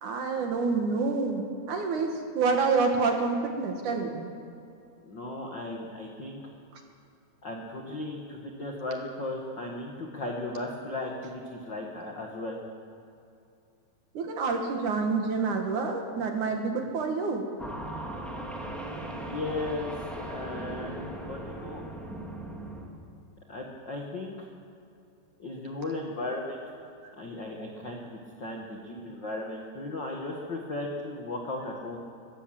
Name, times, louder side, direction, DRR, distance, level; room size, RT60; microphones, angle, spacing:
voice 1, 0.0-4.3 14.1-17.5 27.0-27.1, right 4 dB, 60° right, 3 dB, 2.4 m, -28 dB
voice 2, 5.0-6.4 7.4-12.6 19.2-21.8 23.5-24.5 25.4-26.6 27.2-32.1, left 2 dB, 85° left, 0 dB, 1.0 m, -36 dB
sound 1, 17.6-22.9, right 1 dB, ahead, 1.1 m, -38 dB
22.0 x 15.5 x 7.7 m, 2.6 s
omnidirectional pair, 5.0 m